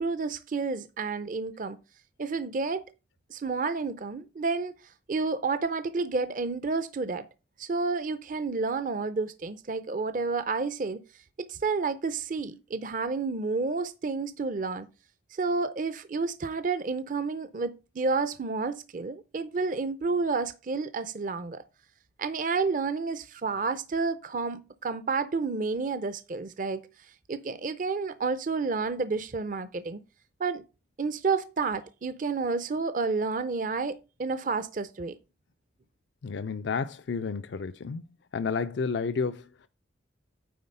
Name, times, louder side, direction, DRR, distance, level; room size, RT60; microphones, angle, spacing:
voice 1, 0.0-1.8 2.2-2.8 3.3-4.7 5.1-7.3 7.6-11.0 11.4-14.9 15.3-21.6 22.2-26.8 27.3-30.0 30.4-30.6 31.0-35.2, right 4 dB, 45° right, 0.5 m, -30 dB
voice 2, 36.2-38.0 38.3-39.7, left 5 dB, 70° left, 0.4 m, -31 dB
9.4 x 3.9 x 5.4 m
head